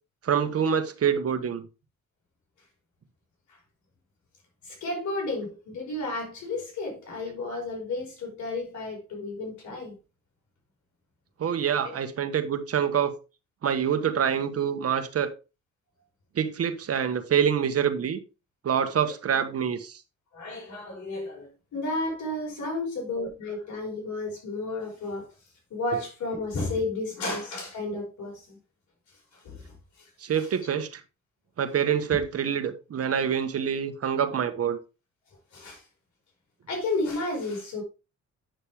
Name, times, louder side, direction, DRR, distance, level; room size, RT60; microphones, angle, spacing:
voice 1, 0.2-1.6 11.4-13.1 13.6-15.3 16.3-18.2 18.6-20.0 25.9-26.0 30.2-31.0 31.6-34.8, right 8 dB, 50° right, 1.4 m, -26 dB
voice 2, 4.6-10.0 11.8-11.9 20.3-25.3 25.7-28.6 29.4-29.7 30.4-30.5 32.1-32.2 35.5-35.8 36.7-37.8, left 2 dB, 70° left, 5.4 m, -32 dB
9.1 x 6.6 x 3.5 m
cardioid pair, 90°, 30 cm